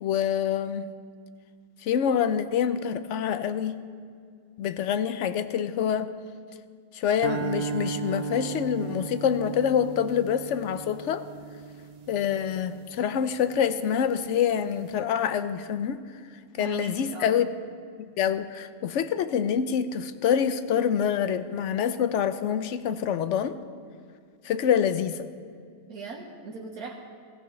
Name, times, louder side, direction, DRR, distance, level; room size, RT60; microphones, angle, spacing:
voice 1, 0.0-0.9 1.8-3.8 4.6-6.1 6.9-11.2 12.1-16.0 16.6-17.5 18.0-23.6 24.4-25.3, left 8 dB, 65° left, 12 dB, 0.8 m, -26 dB
sound 1, 7.2-13.6, right 5 dB, 65° right, 0.4 m, -36 dB
voice 2, 16.6-17.4 25.9-26.9, right 4 dB, 85° right, -2 dB, 1.7 m, -39 dB
17.5 x 16.5 x 3.1 m, 2.1 s
omnidirectional pair, 1.5 m